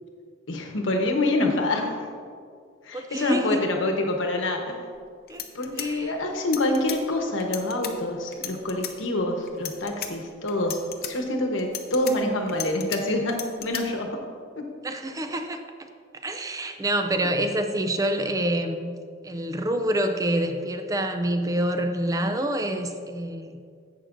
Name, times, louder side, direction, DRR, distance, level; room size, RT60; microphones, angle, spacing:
voice 1, 0.5-1.9 2.8-4.8 5.5-10.8 11.1-14.2 14.6-14.7, left 1 dB, 75° left, 3 dB, 1.1 m, -26 dB
voice 2, 2.9-3.6 5.3-5.4 5.8-6.1 14.8-15.6 16.2-18.9 19.2-23.6, right 1 dB, 20° right, 6 dB, 0.4 m, -27 dB
sound 1, 4.9-5.0 5.3-7.0 7.4-7.9 8.3-8.9 9.5-10.1 10.5-11.1 11.6-13.0 13.3-13.8, left 10 dB, 55° left, 0.7 m, -34 dB
11.0 x 7.7 x 2.6 m, 2.2 s
head